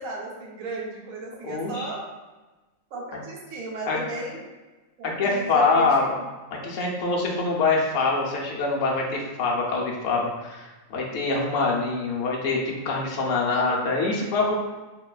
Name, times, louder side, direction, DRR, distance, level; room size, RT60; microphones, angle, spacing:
voice 1, 0.0-2.1 2.9-4.4 5.0-6.1 13.4-14.5, right 2 dB, 75° right, -2 dB, 1.1 m, -35 dB
voice 2, 1.4-1.9 3.9-4.0 5.0-6.1 6.6-14.5, left 3 dB, 70° left, -2 dB, 1.0 m, -24 dB
4.5 x 2.2 x 2.3 m, 1.2 s
omnidirectional pair, 1.5 m